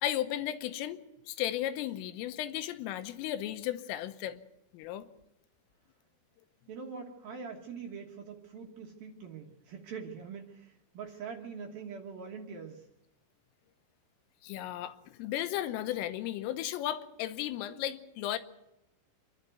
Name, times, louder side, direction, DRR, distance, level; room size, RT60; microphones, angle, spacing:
voice 1, 0.0-4.4 4.7-5.1 14.4-18.4, left 12 dB, 85° left, 11 dB, 3.6 m, -35 dB
voice 2, 6.7-12.9, right 5 dB, 60° right, 1 dB, 2.7 m, -43 dB
26.5 x 12.0 x 9.2 m, 0.90 s
omnidirectional pair, 5.7 m